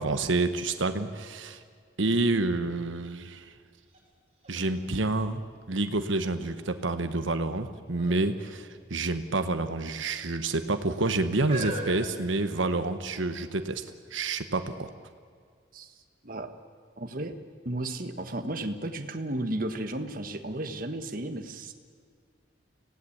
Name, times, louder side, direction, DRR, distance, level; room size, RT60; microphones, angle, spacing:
voice 1, 0.0-1.6 2.0-3.5 4.5-5.4 5.7-13.8 14.1-14.9, right 2 dB, 85° right, 9 dB, 1.2 m, -28 dB
sound 1, 3.9-4.0 4.4-6.0 6.6-7.1 7.9-8.3 8.5-8.7 9.6-10.2 10.9-13.0 13.7-13.8, right 1 dB, 30° right, 5.3 m, -41 dB
voice 2, 15.7-16.5 17.0-17.4 17.6-21.7, right 1 dB, 45° right, 6 dB, 1.4 m, -34 dB
25.5 x 17.0 x 8.6 m, 2.1 s
head